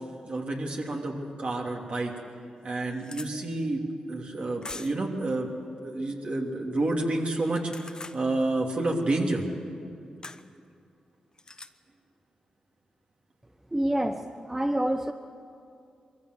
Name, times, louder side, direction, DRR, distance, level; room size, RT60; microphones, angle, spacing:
voice 1, 0.3-2.1 2.6-5.5 5.8-9.5, right 2 dB, 55° right, 0 dB, 3.1 m, -29 dB
sound 1, 1.7-1.8 2.3-2.4 2.6-3.3 4.6-5.1 7.4-8.2 10.2-10.4 11.4-11.7, left 3 dB, 35° left, 0.9 m, -42 dB
voice 2, 13.7-15.1, right 1 dB, 15° right, 7 dB, 0.9 m, -27 dB
22.0 x 15.0 x 8.0 m, 2.4 s
cardioid pair, 50°, 2 cm